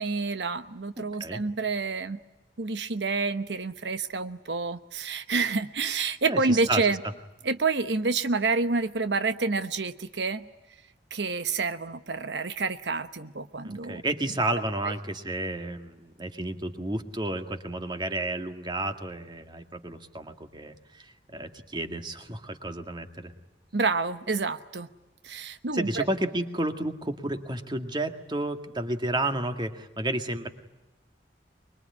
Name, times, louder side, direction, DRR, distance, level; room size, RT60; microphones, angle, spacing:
voice 1, 0.0-2.2 2.6-7.0 7.4-10.4 11.1-14.0 14.8-14.9 23.7-24.9 25.2-26.0, right 4 dB, 75° right, 10 dB, 1.0 m, -28 dB
voice 2, 1.0-1.4 6.3-6.8 13.6-23.3 25.7-30.5, right 1 dB, 25° right, 6 dB, 2.0 m, -31 dB
24.5 x 22.5 x 9.7 m, 1.1 s
head